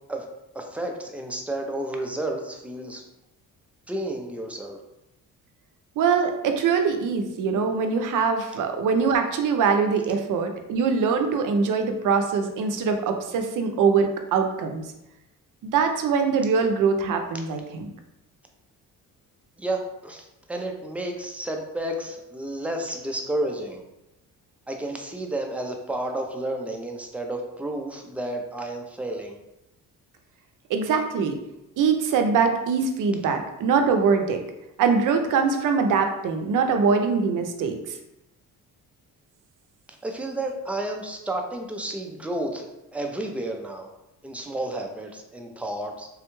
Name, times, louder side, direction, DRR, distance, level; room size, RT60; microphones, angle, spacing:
voice 1, 0.5-3.0 3.9-4.8 19.6-23.8 24.7-29.4 40.0-43.9 44.2-46.1, right 1 dB, 5° right, 2 dB, 0.3 m, -31 dB
voice 2, 6.0-14.8 15.6-17.9 30.7-31.4 31.8-34.4 34.8-38.0, right 5 dB, 65° right, 6 dB, 0.5 m, -23 dB
3.6 x 2.2 x 2.9 m, 0.89 s
cardioid pair, 120°, 35 cm